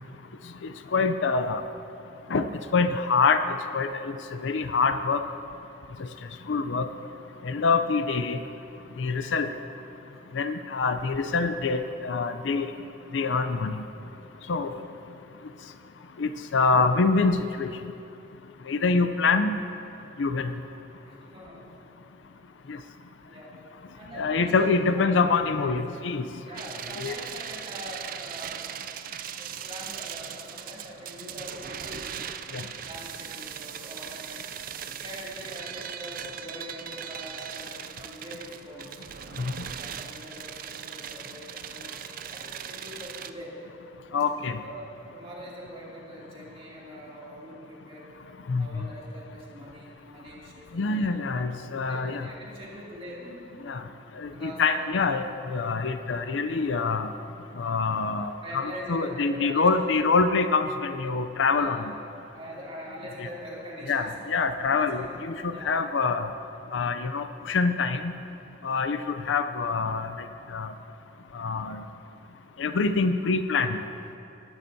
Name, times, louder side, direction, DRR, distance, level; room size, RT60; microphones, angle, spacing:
voice 1, 0.9-1.6 2.3-2.4 2.7-3.4 3.7-4.2 4.4-5.2 6.5-6.8 7.4-8.4 9.0-9.5 10.3-12.7 13.1-13.8 14.5-14.8 16.2-17.7 18.7-19.6 20.2-20.5 22.7-22.8 24.2-26.3 27.0-27.1 32.5-32.6 39.4-39.5 44.1-44.6 48.5-48.8 50.7-52.3 53.7-53.8 54.2-57.1 57.6-61.8 63.9-66.3 66.7-68.0 68.6-70.1 70.5-70.7 71.3-71.8 72.6-73.8, left 4 dB, 85° left, 9 dB, 0.5 m, -25 dB
voice 2, 21.0-21.7 22.3-22.4 23.3-23.5 23.9-25.0 25.6-25.8 26.4-28.7 29.3-32.1 32.8-34.5 34.9-39.0 39.8-42.0 42.3-43.6 44.6-48.1 48.6-51.4 51.9-53.5 54.3-54.9 58.4-59.8 61.6-61.8 62.3-64.1 64.6-65.1 65.5-65.8 68.6-68.8, equal, 30° right, -5 dB, 2.3 m, -43 dB
sound 1, 26.5-43.3, right 9 dB, 50° right, 0.4 m, -39 dB
20.0 x 12.0 x 2.7 m, 2.8 s
head